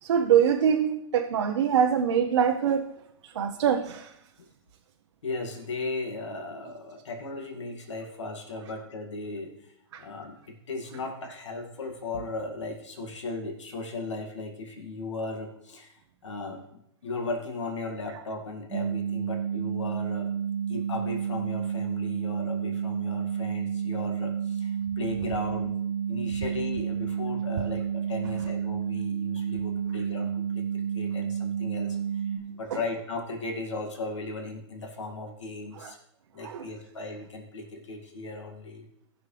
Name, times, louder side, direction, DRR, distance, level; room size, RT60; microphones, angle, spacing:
voice 1, 0.0-2.9 3.2-4.1 9.9-10.0 35.7-35.9 36.4-36.7, right 8 dB, 75° right, 0.8 m, -24 dB
voice 2, 5.2-9.7 10.0-20.3 20.7-25.7 26.1-36.0 36.3-38.9, left 3 dB, 90° left, 2.1 m, -37 dB
sound 1, 18.7-32.4, right 8 dB, 50° right, 1.4 m, -30 dB
19.0 x 6.3 x 3.3 m
hypercardioid pair, 140°, 15 cm